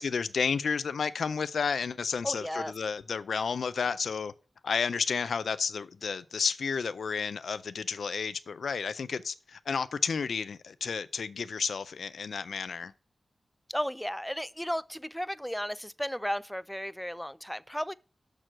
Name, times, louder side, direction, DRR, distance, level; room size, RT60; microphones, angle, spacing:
voice 1, 0.0-4.3 4.6-12.9, left 5 dB, 90° left, 0.4 m, -31 dB
voice 2, 2.2-2.7 13.7-17.9, equal, 5° left, 0.3 m, -34 dB
6.7 x 6.1 x 6.1 m
wide cardioid pair, 90°, 0 cm